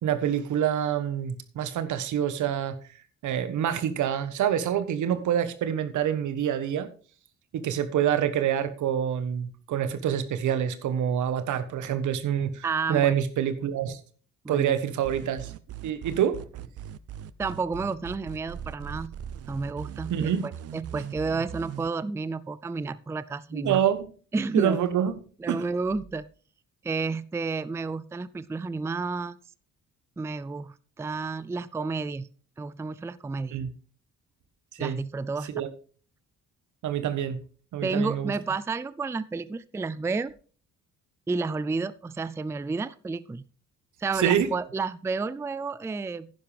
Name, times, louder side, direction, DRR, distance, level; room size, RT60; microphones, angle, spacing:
voice 1, 0.0-2.8 3.2-6.9 7.5-12.6 12.9-14.0 14.5-15.5 15.8-16.7 20.1-20.5 23.5-24.1 24.5-25.1 25.5-25.6 33.5-33.7 34.8-35.0 35.5-35.7 36.8-37.4 37.7-38.3 44.2-44.5, right 9 dB, 75° right, 1.3 m, -26 dB
voice 2, 12.6-13.2 14.4-14.7 17.4-19.1 19.5-23.8 24.3-24.8 25.4-26.2 26.8-29.4 30.2-32.3 32.6-33.6 34.8-35.5 37.8-40.3 41.3-43.4 44.0-46.3, right 4 dB, 10° right, 0.4 m, -31 dB
sound 1, 15.0-21.9, right 10 dB, 55° right, 0.6 m, -39 dB
10.5 x 10.5 x 3.4 m
cardioid pair, 90°, 30 cm